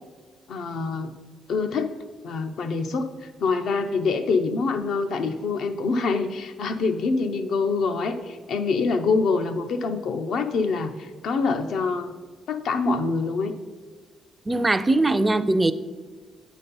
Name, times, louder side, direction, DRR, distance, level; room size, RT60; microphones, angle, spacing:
voice 1, 0.5-1.1 1.5-1.9 2.2-12.1 12.5-13.5, left 4 dB, 70° left, 7 dB, 0.6 m, -25 dB
voice 2, 14.5-15.7, right 2 dB, 20° right, 12 dB, 0.4 m, -21 dB
8.5 x 4.2 x 5.3 m, 1.4 s
cardioid pair, 90°, 0 cm